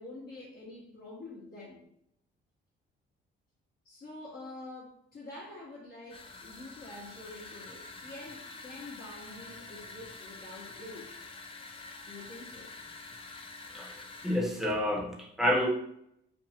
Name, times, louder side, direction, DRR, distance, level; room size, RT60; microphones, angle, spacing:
voice 1, 0.0-1.8 3.8-11.2 12.0-12.7, left 2 dB, 50° left, -6 dB, 0.8 m, -47 dB
sound 1, 6.1-14.5, left 3 dB, 30° left, 0.4 m, -47 dB
voice 2, 13.7-15.7, equal, ahead, -1 dB, 0.7 m, -29 dB
2.6 x 2.4 x 2.7 m, 0.74 s
cardioid pair, 90°, 20 cm